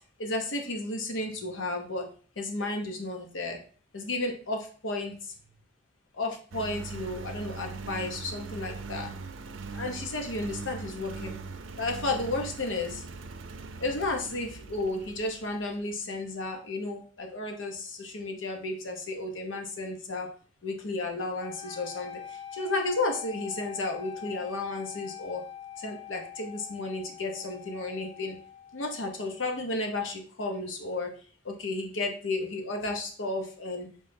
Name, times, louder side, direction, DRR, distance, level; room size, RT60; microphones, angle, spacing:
voice 1, 0.2-2.1 2.4-3.6 3.9-5.3 6.1-9.1 9.7-11.3 11.8-13.0 13.8-20.3 20.6-25.4 25.8-28.4 28.7-31.1 31.4-33.9, left 2 dB, 85° left, 3 dB, 0.9 m, -33 dB
Engine, 6.5-15.9, right 4 dB, 85° right, 0.5 m, -41 dB
sound 1, 21.4-29.5, left 9 dB, 35° left, 0.4 m, -44 dB
5.3 x 3.5 x 2.7 m, 0.41 s
head